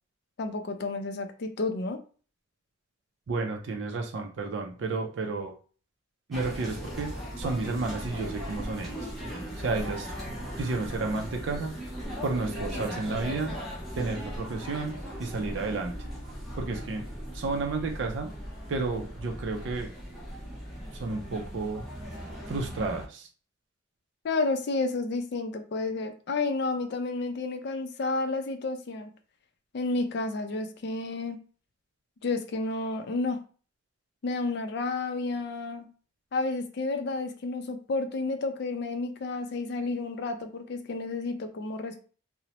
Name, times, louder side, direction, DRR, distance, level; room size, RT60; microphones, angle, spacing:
voice 1, 0.4-2.0 24.2-29.1 29.7-31.4 32.2-33.4 34.2-35.9 36.3-42.0, left 3 dB, 60° left, 6 dB, 0.4 m, -31 dB
voice 2, 3.3-5.5 6.3-9.1 9.6-10.1 10.6-11.8 12.2-13.6 14.0-16.0 16.5-17.1 17.3-18.3 18.7-19.9 20.9-21.9 22.5-23.3, right 3 dB, 65° right, 4 dB, 0.4 m, -32 dB
sound 1, 6.3-23.1, equal, ahead, 0.7 m, -38 dB
2.8 x 2.0 x 2.8 m, 0.39 s
head